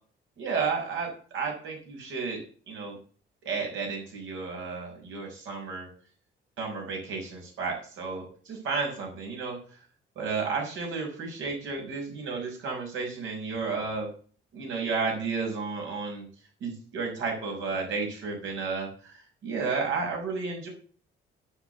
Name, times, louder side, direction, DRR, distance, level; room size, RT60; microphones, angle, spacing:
voice 1, 0.4-2.4 2.7-3.0 3.4-5.9 6.6-9.6 10.2-14.1 14.5-16.2 16.6-20.7, right 4 dB, 80° right, 0 dB, 6.3 m, -32 dB
9.8 x 9.8 x 7.0 m, 0.42 s
cardioid pair, 90°, 20 cm